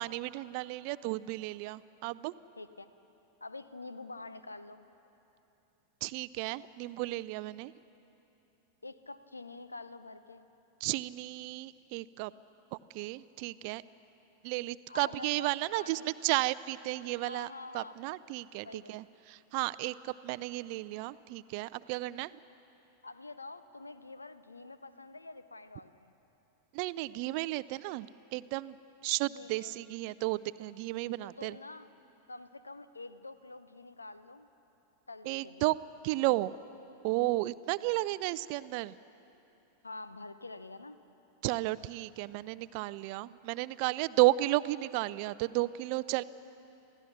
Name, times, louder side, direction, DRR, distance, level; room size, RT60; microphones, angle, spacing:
voice 1, 0.0-2.3 6.0-7.7 10.8-12.3 12.7-13.8 14.4-17.5 17.7-22.4 26.7-28.8 29.0-31.6 35.3-35.8 36.0-36.6 37.0-39.0 41.4-46.2, right 19 dB, 45° right, 18 dB, 0.4 m, -33 dB
voice 2, 2.6-2.9 3.4-4.9 8.8-10.5 14.9-16.2 17.2-18.0 18.6-19.0 23.0-26.1 29.3-29.7 31.2-31.9 32.3-34.5 35.1-35.7 39.8-41.0, left 3 dB, 80° left, 13 dB, 0.7 m, -47 dB
27.5 x 16.5 x 6.0 m, 3.0 s
figure-of-eight pair, 90°, 0 cm